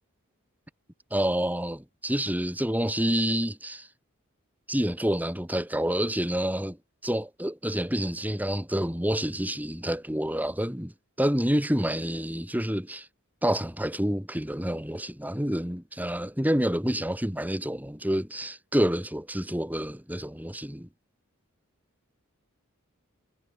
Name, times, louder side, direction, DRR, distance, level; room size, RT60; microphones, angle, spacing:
voice 1, 1.1-3.9 4.7-6.8 7.0-10.9 11.2-13.1 13.4-20.9, equal, 10° right, 5.0 m, -28 dB
head